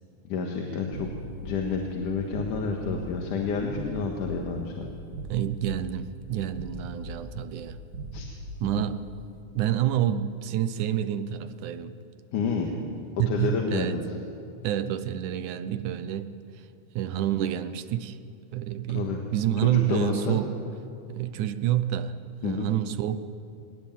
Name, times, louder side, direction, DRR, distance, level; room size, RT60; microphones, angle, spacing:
voice 1, 0.3-1.1 1.4-4.9 8.1-8.3 12.3-12.7 13.3-14.0 18.9-19.2 19.6-20.4 22.4-22.7, left 5 dB, 85° left, 1 dB, 3.2 m, -29 dB
sound 1, 0.9-9.2, right 1 dB, 35° right, 2.1 m, -40 dB
voice 2, 5.3-7.8 8.6-9.0 9.6-11.9 13.2-14.0 14.6-16.7 17.0-18.2 18.5-20.5 21.1-22.2 22.4-23.2, right 11 dB, 80° right, 12 dB, 2.3 m, -28 dB
24.0 x 18.5 x 9.2 m, 2.5 s
omnidirectional pair, 3.6 m